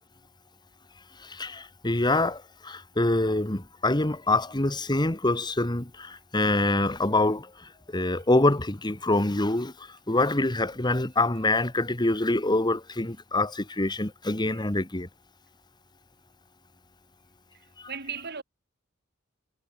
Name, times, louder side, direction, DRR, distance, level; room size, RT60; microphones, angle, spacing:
voice 1, 1.2-15.1 17.8-17.9, left 2 dB, 20° left, 1.6 m, -25 dB
voice 2, 17.9-18.4, right 6 dB, 55° right, 4.3 m, -36 dB
head